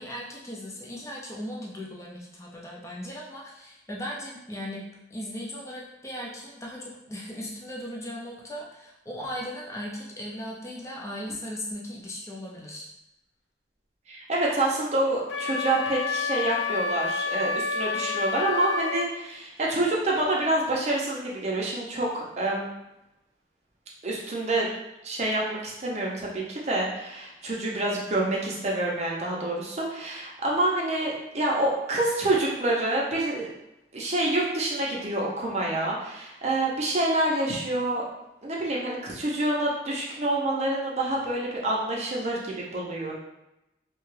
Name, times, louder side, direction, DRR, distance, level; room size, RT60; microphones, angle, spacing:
voice 1, 0.0-12.9, equal, 15° left, -4 dB, 0.5 m, -37 dB
voice 2, 14.1-22.7 24.0-24.7 25.0-33.5 33.9-38.0 38.4-43.2, right 1 dB, 40° right, -3 dB, 0.6 m, -27 dB
Wind instrument woodwind instrument, 15.3-19.1, left 4 dB, 90° left, 0.3 m, -29 dB
2.8 x 2.3 x 3.1 m, 0.90 s
head